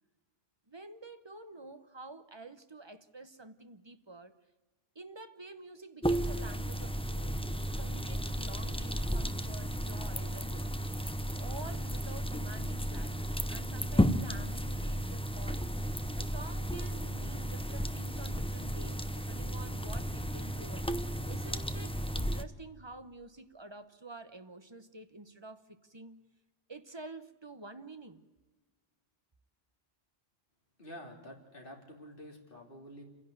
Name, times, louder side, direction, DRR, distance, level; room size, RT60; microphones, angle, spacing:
voice 1, 0.7-4.4 4.9-10.7 11.4-15.7 16.1-20.9 21.3-26.3 26.7-28.2, right 2 dB, 25° right, 1.0 m, -49 dB
sound 1, 6.0-22.4, equal, 5° left, 0.6 m, -34 dB
voice 2, 30.8-33.0, equal, 60° left, 3.4 m, -49 dB
28.5 x 11.0 x 9.3 m
omnidirectional pair, 1.0 m